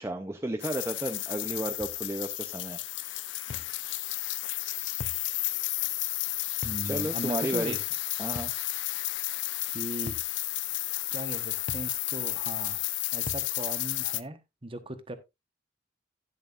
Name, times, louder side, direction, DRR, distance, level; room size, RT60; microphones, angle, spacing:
voice 1, 0.0-2.8 6.9-7.8 8.2-8.5, right 1 dB, 15° right, 0.7 m, -33 dB
sound 1, 0.6-14.2, left 17 dB, 90° left, 0.6 m, -32 dB
sound 2, 1.8-2.0 3.5-3.7 5.0-5.3 6.6-6.9 8.4-8.6 10.1-10.3 11.7-11.9 13.3-13.5, left 3 dB, 45° left, 0.6 m, -40 dB
voice 2, 6.6-7.8 9.7-10.2 11.1-12.8 13.1-15.2, right 1 dB, 30° right, 1.2 m, -38 dB
11.0 x 10.5 x 2.5 m
head